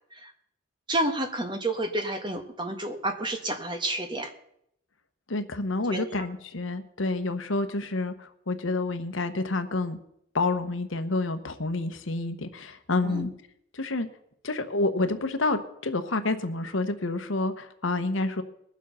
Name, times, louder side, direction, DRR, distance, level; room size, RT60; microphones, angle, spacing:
voice 1, 0.9-4.3 5.9-6.0 13.0-13.3, right 1 dB, 25° right, 5 dB, 1.4 m, -30 dB
voice 2, 5.3-10.0 10.3-13.3 13.7-14.1 14.4-18.4, left 2 dB, 75° left, 9 dB, 1.1 m, -28 dB
20.5 x 7.3 x 5.6 m, 0.73 s
head